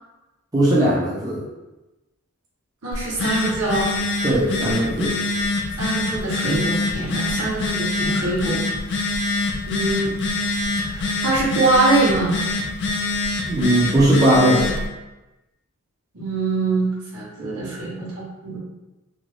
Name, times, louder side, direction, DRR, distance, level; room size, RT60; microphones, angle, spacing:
voice 1, 0.5-1.4 4.2-5.1 13.5-14.7, right 1 dB, 15° right, -8 dB, 0.5 m, -18 dB
voice 2, 2.8-3.9 5.8-8.6 9.7-10.1 10.8-12.4 16.1-18.6, right 2 dB, 70° right, -6 dB, 1.0 m, -23 dB
Telephone, 2.9-14.9, left 2 dB, 50° left, 0.4 m, -25 dB
2.5 x 2.2 x 3.1 m, 1.1 s
head